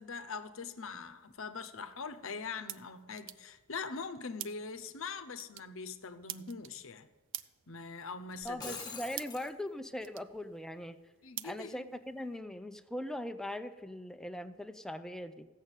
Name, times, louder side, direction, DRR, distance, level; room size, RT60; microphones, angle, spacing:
voice 1, 0.0-7.1 7.7-8.8 11.2-12.0, left 5 dB, 65° left, 0.8 m, -42 dB
sound 1, 0.9-12.4, right 14 dB, 60° right, 0.5 m, -50 dB
Shatter, 8.4-9.5, left 5 dB, 20° left, 1.5 m, -44 dB
voice 2, 8.4-11.0 11.4-15.5, left 1 dB, ahead, 0.5 m, -40 dB
15.5 x 6.5 x 8.2 m
head